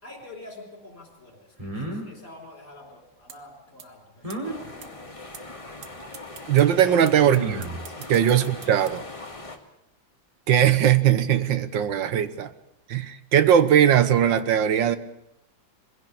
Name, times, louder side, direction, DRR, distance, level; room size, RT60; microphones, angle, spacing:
voice 1, 0.0-5.4 6.6-7.0 7.9-8.1, left 2 dB, 40° left, 1 dB, 4.6 m, -46 dB
sound 1, 1.6-2.1 4.2-4.6 6.0-6.1 7.2-7.9, right 1 dB, 15° right, 3.9 m, -32 dB
sound 2, 3.3-3.4 3.8-3.9 4.3-4.4 4.8-4.9 5.3-5.4 5.8-5.9 6.1-8.9, right 7 dB, 55° right, 1.6 m, -42 dB
sound 3, 4.4-9.6, left 2 dB, 20° left, 1.7 m, -41 dB
voice 2, 6.5-7.7 8.1-9.0 10.5-12.5 12.9-15.0, right 9 dB, 75° right, 13 dB, 1.7 m, -19 dB
22.0 x 16.5 x 8.4 m, 0.84 s
omnidirectional pair, 2.1 m